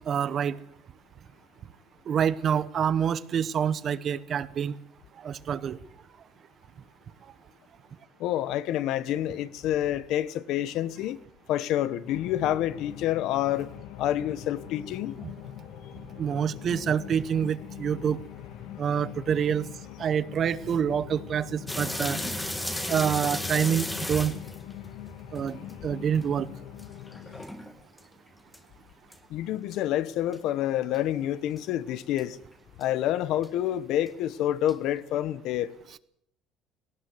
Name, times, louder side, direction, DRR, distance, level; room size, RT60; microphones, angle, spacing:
voice 1, 0.1-0.6 2.1-4.7 5.2-5.8 15.2-15.3 16.2-18.2 18.8-19.7 20.0-22.2 22.9-24.3 25.3-26.5, right 8 dB, 35° right, 0.9 m, -27 dB
voice 2, 8.2-11.2 11.5-13.7 14.0-15.2 29.3-32.4 32.8-35.7, left 12 dB, 60° left, 1.0 m, -28 dB
sound 1, 12.1-27.4, left 10 dB, 80° left, 2.1 m, -43 dB
sound 2, 21.7-25.7 26.1-26.2 26.8-28.0 28.5-28.6 29.1-29.2 29.7-29.8 30.3-30.4 30.9-31.0 31.6-31.7 32.2-32.3 32.8-32.9 33.4-33.5 34.1-34.2 34.7-34.8, left 1 dB, 5° left, 1.7 m, -34 dB
18.5 x 18.0 x 7.9 m
cardioid pair, 160°, 0 cm